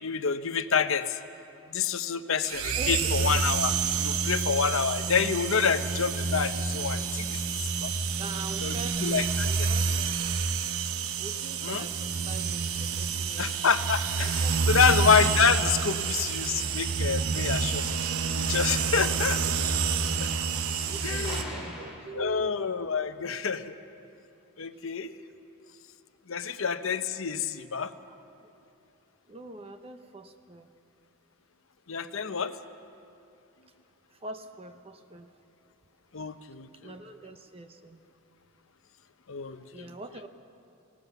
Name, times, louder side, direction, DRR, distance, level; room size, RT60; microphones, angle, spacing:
voice 1, 0.0-1.2 1.7-3.7 4.0-7.4 7.7-7.9 8.6-8.8 9.0-9.7 11.6-11.9 13.4-17.8 18.4-19.4 20.2-20.3 21.0-21.6 22.1-23.8 24.6-25.1 26.3-27.9 31.9-32.6 36.1-37.0 39.3-39.9, left 6 dB, 65° left, 10 dB, 0.8 m, -28 dB
sound 1, 2.4-21.4, right 5 dB, 80° right, 0.9 m, -28 dB
voice 2, 2.8-3.1 8.2-10.4 11.2-13.6 14.2-14.7 15.1-15.3 17.8-18.0 19.4-19.6 20.9-22.5 26.4-26.5 28.1-28.2 28.4-28.5 29.3-30.7 34.1-35.5 36.7-38.0 39.6-40.3, right 3 dB, 25° right, 7 dB, 0.9 m, -44 dB
sound 2, 13.7-22.0, equal, ahead, 4.5 m, -46 dB
24.5 x 17.5 x 7.1 m, 2.7 s
head